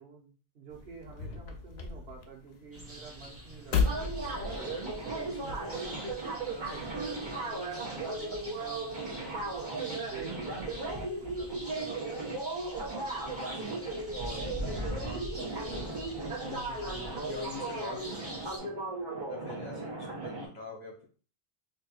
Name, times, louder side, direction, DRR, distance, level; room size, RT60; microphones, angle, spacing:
voice 1, 0.0-4.7 5.1-5.9 6.4-12.2 15.1-15.3, right 6 dB, 80° right, 0 dB, 1.2 m, -49 dB
sound 1, 0.7-5.7, left 5 dB, 75° left, 0.9 m, -35 dB
sound 2, 2.7-18.6, equal, 15° right, 0.9 m, -44 dB
sound 3, 3.8-20.5, right 2 dB, 50° right, 1.2 m, -36 dB
voice 2, 13.5-13.9 14.9-18.8 19.3-21.0, left 2 dB, 45° left, -1 dB, 1.0 m, -46 dB
4.3 x 2.8 x 2.4 m, 0.39 s
omnidirectional pair, 1.1 m